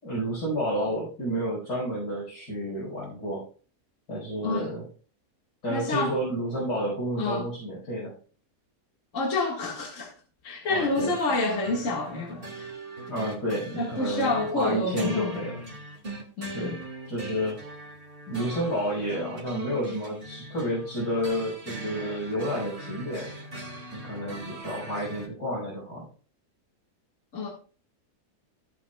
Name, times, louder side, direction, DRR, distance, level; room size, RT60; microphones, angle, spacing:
voice 1, 0.0-3.4 4.1-4.8 5.6-8.1 10.7-11.1 13.1-15.6 16.5-16.8 17.1-17.6 18.3-23.3 23.9-26.0, equal, 80° left, 5.9 m, -30 dB
voice 2, 5.7-6.2 7.2-7.5 9.1-10.1 10.4-12.7 13.8-15.5 16.4-16.8 27.3-27.5, left 2 dB, 50° left, 2.2 m, -28 dB
sound 1, 11.0-25.3, right 1 dB, 35° right, 2.2 m, -40 dB
15.5 x 7.4 x 2.3 m
omnidirectional pair, 1.7 m